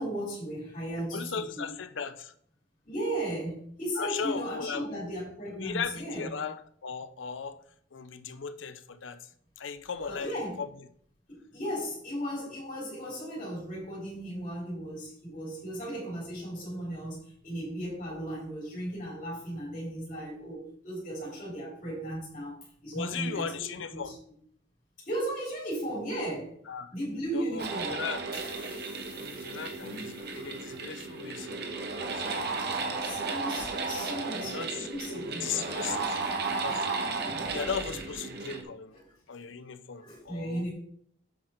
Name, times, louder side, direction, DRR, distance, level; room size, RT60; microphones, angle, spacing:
voice 1, 0.0-1.7 2.8-6.3 10.1-10.6 11.3-23.5 23.9-24.1 25.0-26.6 26.9-28.0 29.8-30.1 32.5-36.2 37.0-37.6 39.0-39.1 40.0-40.7, right 1 dB, 40° left, -4 dB, 3.7 m, -36 dB
voice 2, 1.1-2.3 4.0-5.2 5.6-7.6 7.9-9.3 9.6-10.7 22.9-24.2 26.7-26.9 27.3-28.4 29.1-31.7 32.0-33.2 34.0-36.0 36.6-36.9 37.5-38.9 39.3-40.6, left 6 dB, 70° left, 12 dB, 0.6 m, -37 dB
sound 1, 27.6-38.6, right 4 dB, 55° right, 1.2 m, -34 dB
sound 2, 28.3-31.7, left 3 dB, 25° left, 3.6 m, -53 dB
7.5 x 5.8 x 4.5 m, 0.64 s
head